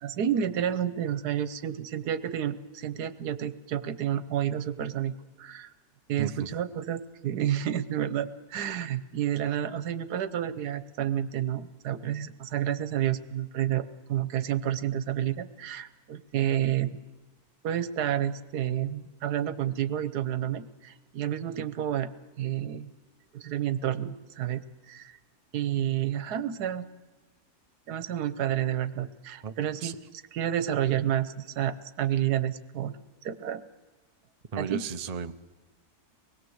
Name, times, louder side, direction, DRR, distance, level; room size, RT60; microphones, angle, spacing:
voice 1, 0.0-5.1 5.4-5.7 6.1-17.0 17.6-22.1 22.4-22.9 23.3-25.2 25.5-26.9 27.9-30.0 30.3-32.9 33.2-33.6 34.6-34.8, right 10 dB, 80° right, 14 dB, 1.5 m, -30 dB
voice 2, 6.2-6.5 29.4-29.5 29.8-30.0 34.5-35.3, right 6 dB, 35° right, 9 dB, 0.6 m, -34 dB
24.5 x 20.5 x 7.9 m, 1.2 s
omnidirectional pair, 1.7 m